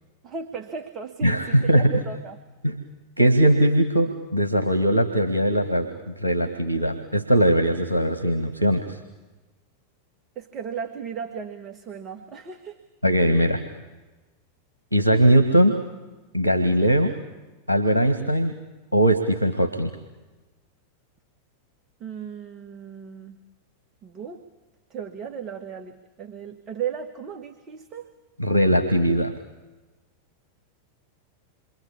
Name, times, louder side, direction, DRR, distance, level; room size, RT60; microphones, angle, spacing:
voice 1, 0.2-2.4 10.4-12.8 22.0-23.4 24.0-24.4 24.9-28.1, right 7 dB, 30° right, 5 dB, 2.0 m, -35 dB
voice 2, 1.2-1.9 2.6-2.8 3.2-9.0 13.0-13.6 14.9-15.8 16.3-17.1 17.7-18.5 18.9-19.9 28.4-29.3, right 1 dB, 85° right, 10 dB, 1.8 m, -20 dB
28.0 x 24.5 x 8.6 m, 1.1 s
figure-of-eight pair, 90°, 0 cm